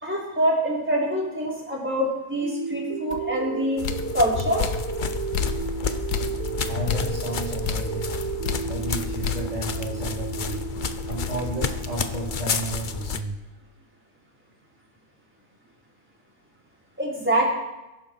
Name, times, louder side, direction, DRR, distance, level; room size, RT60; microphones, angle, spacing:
voice 1, 0.0-3.8 4.1-4.6 17.0-17.5, right 1 dB, 5° right, -5 dB, 4.7 m, -25 dB
sound 1, 2.4-12.4, right 7 dB, 65° right, 1.4 m, -34 dB
sound 2, 3.1-3.3 3.8-4.2 4.6-4.9 5.3-5.8 6.1-6.4 6.9-7.2 7.6-8.0 8.4-8.7 9.2-9.6 10.0-10.1 10.5-12.0, left 8 dB, 85° left, 1.5 m, -31 dB
sound 3, 3.8-13.2, left 6 dB, 45° left, 0.7 m, -30 dB
voice 2, 6.6-8.2 8.6-10.6 11.1-13.3, right 3 dB, 25° right, -4 dB, 2.7 m, -33 dB
21.5 x 11.5 x 5.0 m, 1.0 s
omnidirectional pair, 1.7 m